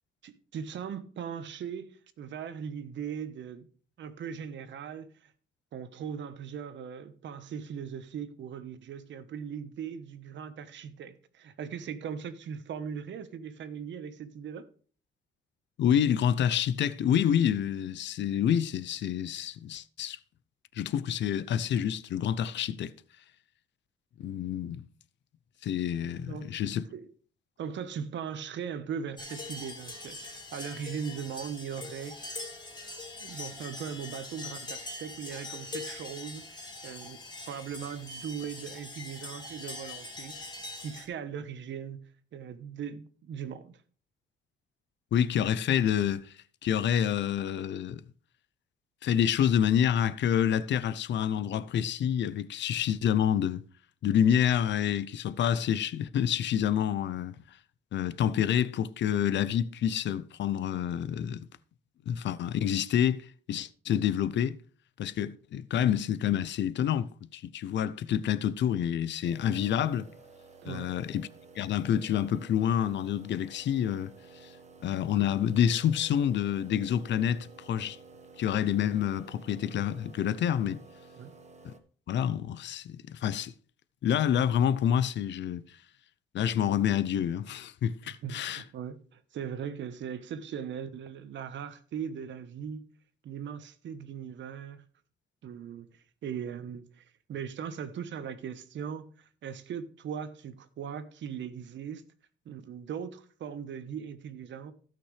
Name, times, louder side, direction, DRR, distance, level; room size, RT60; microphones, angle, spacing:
voice 1, 0.2-3.7 4.0-5.3 5.7-14.6 26.0-26.5 26.9-27.1 27.6-32.3 33.2-37.2 37.5-42.0 42.3-43.8 70.6-70.9 81.2-81.3 88.1-92.8 93.2-94.8 95.4-97.0 97.3-102.0 102.4-104.7, right 7 dB, 70° right, 1.2 m, -39 dB
voice 2, 15.8-20.2 20.7-22.9 24.2-24.9 25.6-26.8 45.1-46.3 46.6-48.0 49.0-53.6 54.0-57.3 57.9-61.5 62.1-64.6 65.0-70.1 70.6-71.3 71.6-74.1 74.4-74.5 74.8-78.0 78.4-80.8 81.6-81.7 82.1-83.5 84.0-85.6 86.3-88.6, left 9 dB, 65° left, 0.6 m, -28 dB
sound 1, 29.2-41.1, left 2 dB, 20° left, 3.5 m, -42 dB
sound 2, 69.2-81.8, right 4 dB, 35° right, 1.4 m, -53 dB
16.0 x 5.9 x 3.3 m
cardioid pair, 90°, 20 cm